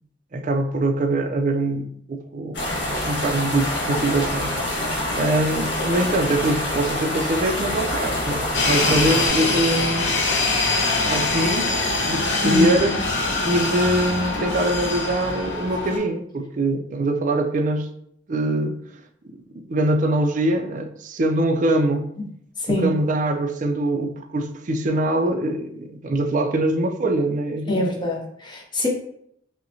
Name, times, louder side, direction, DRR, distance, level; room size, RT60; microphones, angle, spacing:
voice 1, 0.3-10.2 11.1-11.8 12.1-12.9 13.4-17.9 18.3-18.8 19.5-22.1 22.7-27.8, right 1 dB, 45° right, 6 dB, 0.4 m, -23 dB
sound 1, 2.5-9.3, left 1 dB, 70° left, 1.2 m, -26 dB
sound 2, 8.5-16.0, left 3 dB, 90° left, 0.8 m, -23 dB
voice 2, 27.7-28.9, left 1 dB, 25° left, -1 dB, 0.6 m, -24 dB
5.4 x 2.1 x 2.7 m, 0.72 s
head